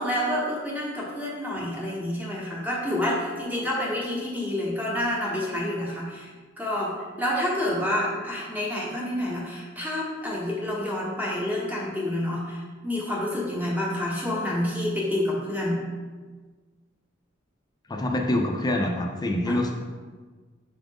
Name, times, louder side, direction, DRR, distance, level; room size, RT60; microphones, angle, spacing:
voice 1, 0.0-6.3 6.6-15.8 19.5-19.6, left 1 dB, 10° right, -4 dB, 0.9 m, -28 dB
voice 2, 17.9-19.7, left 1 dB, 20° left, 2 dB, 0.5 m, -25 dB
5.8 x 2.5 x 3.5 m, 1.4 s
head